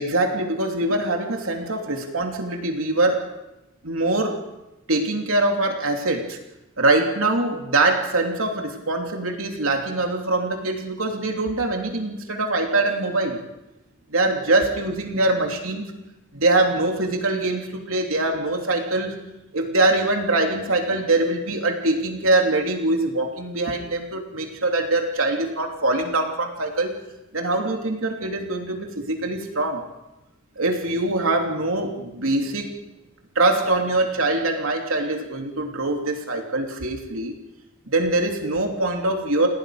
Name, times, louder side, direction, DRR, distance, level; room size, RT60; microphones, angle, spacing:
voice 1, 0.0-3.3 3.8-4.4 4.9-6.4 6.8-13.4 14.1-15.9 16.3-19.2 19.5-27.0 27.3-29.8 30.6-32.7 33.3-37.3 37.9-39.5, right 2 dB, 85° right, 2 dB, 3.1 m, -23 dB
28.5 x 18.5 x 5.0 m, 0.95 s
head